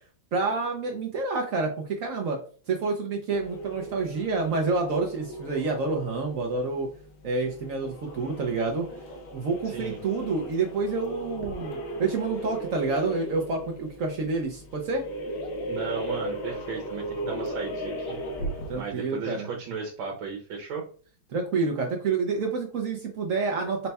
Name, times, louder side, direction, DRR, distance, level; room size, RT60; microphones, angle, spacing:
voice 1, 0.3-2.4 2.7-6.9 7.2-8.9 9.3-15.0 18.7-19.5 21.3-23.9, right 4 dB, 70° right, 1 dB, 0.7 m, -28 dB
sound 1, 3.3-19.0, right 1 dB, 80° left, 1.6 m, -37 dB
voice 2, 9.7-10.0 15.7-18.2 18.8-20.8, right 5 dB, 90° right, 2 dB, 1.6 m, -35 dB
4.4 x 2.2 x 4.0 m, 0.42 s
omnidirectional pair, 2.2 m